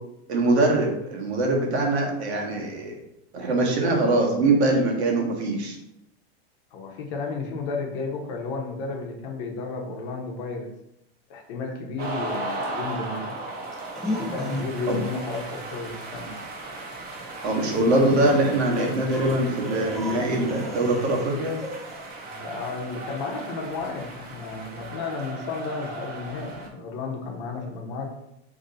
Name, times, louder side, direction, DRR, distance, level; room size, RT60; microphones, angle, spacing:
voice 1, 0.3-3.0 3.3-5.8 14.9-15.0 17.4-21.6, right 2 dB, 85° right, 0 dB, 1.1 m, -23 dB
voice 2, 6.7-10.7 11.3-13.3 14.2-16.4 22.3-28.1, left 4 dB, 55° left, 2 dB, 0.9 m, -33 dB
sound 1, 12.0-26.7, right 2 dB, 30° right, 0.7 m, -37 dB
sound 2, 13.7-14.9 15.3-15.5 17.4-17.5 18.3-21.3 21.6-22.1, left 1 dB, ahead, 0.4 m, -34 dB
2.9 x 2.7 x 3.9 m, 0.84 s
supercardioid pair, 125°, 32 cm